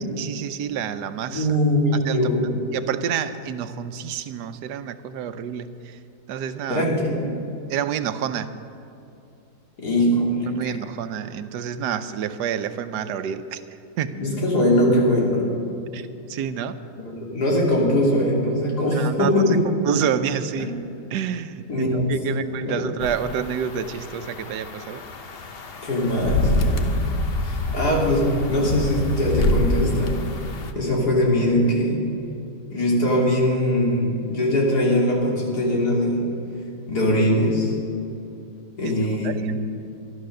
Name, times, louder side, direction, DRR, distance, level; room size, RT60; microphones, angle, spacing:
voice 1, 0.0-1.5 2.0-2.2 2.7-6.0 6.3-6.8 7.7-8.6 10.5-13.6 14.0-14.1 15.9-16.8 18.9-19.3 19.8-20.7 21.1-25.0 38.8-38.9 39.2-39.5, right 8 dB, 85° right, 11 dB, 1.3 m, -28 dB
voice 2, 1.3-2.6 6.7-7.3 9.8-10.7 14.1-15.5 17.0-19.6 20.6-20.7 21.7-22.8 25.8-26.9 27.4-30.2 30.7-32.0 32.7-36.2 36.9-37.8 38.8-39.5, left 1 dB, 75° left, -3 dB, 3.3 m, -21 dB
sound 1, 23.0-30.7, left 2 dB, 45° left, 1.0 m, -26 dB
13.0 x 11.5 x 6.5 m, 2.7 s
omnidirectional pair, 1.7 m